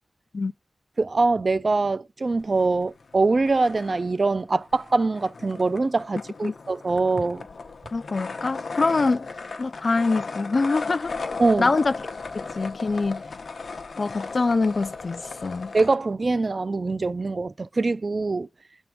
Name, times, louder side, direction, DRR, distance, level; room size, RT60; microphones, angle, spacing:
voice 1, 1.0-7.5 11.4-11.7 15.7-18.5, right 3 dB, 55° right, 0.3 m, -23 dB
sound 1, 2.4-3.2 3.4-16.0, left 4 dB, 85° left, 0.7 m, -36 dB
voice 2, 7.9-9.3 9.6-11.1 11.6-11.9 12.3-13.2 14.0-15.7, left 3 dB, 60° left, 0.4 m, -24 dB
6.9 x 3.6 x 4.5 m
wide cardioid pair, 75°, 0 cm